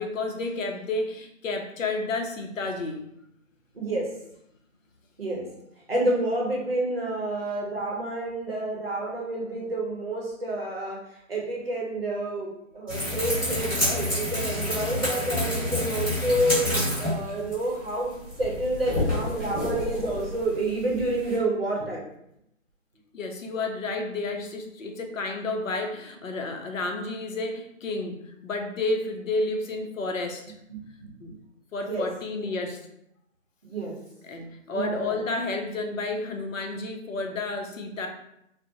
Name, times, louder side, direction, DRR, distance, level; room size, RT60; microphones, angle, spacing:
voice 1, 0.0-3.0 23.1-30.5 31.2-31.3 31.7-32.8 34.2-38.1, left 2 dB, 75° left, 4 dB, 0.6 m, -31 dB
voice 2, 3.7-4.1 5.2-5.5 5.9-11.0 11.3-22.0 30.7-31.4 31.8-32.1 33.6-34.0 34.7-35.2, right 1 dB, 50° right, -3 dB, 0.7 m, -29 dB
sound 1, 12.9-21.4, left 1 dB, 15° left, 0.9 m, -29 dB
2.5 x 2.1 x 2.6 m, 0.78 s
figure-of-eight pair, 175°, 40 cm